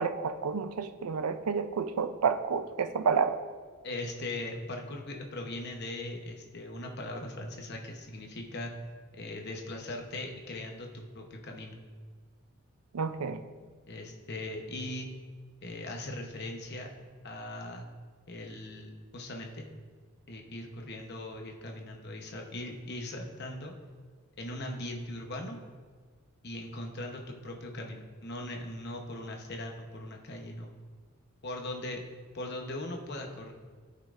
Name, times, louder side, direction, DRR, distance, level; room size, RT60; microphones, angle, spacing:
voice 1, 0.0-3.4 12.9-13.4, right 5 dB, 90° right, 10 dB, 0.5 m, -30 dB
voice 2, 3.8-8.7 9.1-11.8 13.9-15.1 15.6-16.9 17.2-17.9 18.3-19.7 20.3-23.7 24.4-25.6 26.4-30.7 31.4-32.0 32.3-33.5, left 1 dB, 50° left, 2 dB, 0.9 m, -39 dB
13.5 x 5.6 x 2.5 m, 1.5 s
head